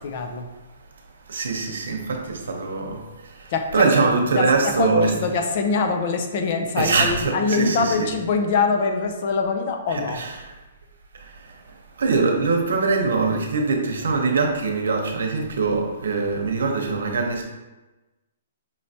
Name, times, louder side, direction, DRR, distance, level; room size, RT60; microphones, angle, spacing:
voice 1, 0.0-0.5 3.5-3.9 4.4-4.5 4.8-10.2, left 4 dB, 40° left, 5 dB, 0.5 m, -23 dB
voice 2, 1.3-3.0 3.7-5.1 6.8-8.1 9.9-10.4 12.0-17.4, right 4 dB, 85° right, 2 dB, 0.9 m, -22 dB
5.5 x 3.2 x 2.8 m, 1.1 s
hypercardioid pair, 170°, 0 cm